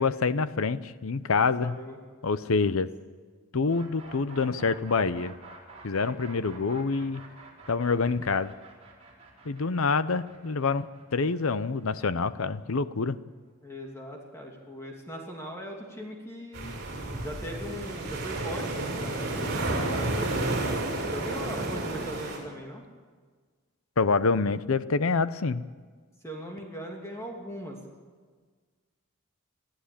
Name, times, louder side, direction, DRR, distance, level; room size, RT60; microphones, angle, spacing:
voice 1, 0.0-1.7 2.2-2.9 3.5-5.3 5.8-7.2 7.7-8.5 9.4-10.9 11.1-13.2 24.0-25.6, left 4 dB, 80° left, 14 dB, 0.7 m, -26 dB
voice 2, 1.6-2.0 13.6-16.7 17.1-20.5 21.1-22.8 26.2-27.8, equal, 15° left, 0 dB, 2.8 m, -39 dB
sound 1, 3.7-13.5, right 3 dB, 30° right, 4.9 m, -50 dB
sound 2, 16.5-22.4, right 2 dB, 50° right, 6.2 m, -31 dB
23.0 x 14.5 x 8.7 m, 1.5 s
head